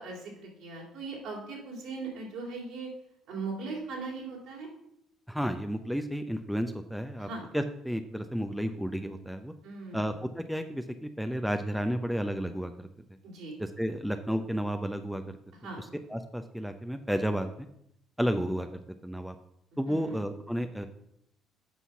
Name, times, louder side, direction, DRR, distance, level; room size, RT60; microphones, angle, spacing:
voice 1, 0.0-2.9 3.3-4.7 7.2-7.5 9.6-10.1 13.2-13.6 15.6-15.9 19.8-20.2, right 3 dB, 65° right, -2 dB, 3.2 m, -39 dB
voice 2, 5.3-7.3 7.5-9.5 9.9-12.9 13.8-15.4 16.1-17.7 18.2-19.3 19.8-20.9, equal, ahead, 7 dB, 0.7 m, -32 dB
8.4 x 5.5 x 5.7 m, 0.75 s
figure-of-eight pair, 50°, 0 cm